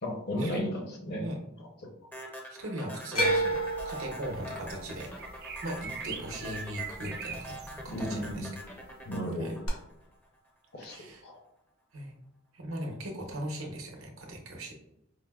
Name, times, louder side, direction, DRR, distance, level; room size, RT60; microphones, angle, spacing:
voice 1, 0.0-1.3 7.9-8.5 9.0-9.6 10.7-11.4, equal, 55° left, 1 dB, 0.7 m, -34 dB
sound 1, 2.1-10.5, equal, 10° left, 0.4 m, -44 dB
voice 2, 2.5-3.6 3.8-5.1 5.6-5.8 6.0-8.5 9.4-9.6 10.9-11.2 11.9-12.1 12.5-14.7, right 1 dB, 85° right, 1 dB, 0.8 m, -39 dB
sound 2, 3.1-7.3 7.6-8.3 9.7-9.8, right 1 dB, 85° left, 0.9 m, -32 dB
sound 3, 5.1-7.7, right 6 dB, 50° right, 0.4 m, -41 dB
4.7 x 2.0 x 2.3 m, 0.84 s
head